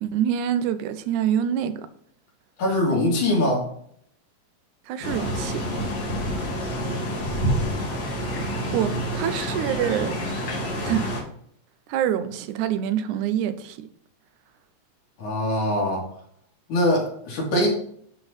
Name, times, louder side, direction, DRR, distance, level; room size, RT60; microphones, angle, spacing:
voice 1, 0.0-1.9 4.9-5.6 8.5-10.2 10.8-11.1 11.9-13.9, right 10 dB, 85° right, 2.1 m, -26 dB
voice 2, 2.6-3.7 15.2-16.1 16.7-17.7, left 1 dB, 75° left, 3.9 m, -22 dB
sound 1, 5.0-11.2, equal, 60° left, 3.3 m, -28 dB
11.0 x 3.9 x 4.1 m
omnidirectional pair, 3.4 m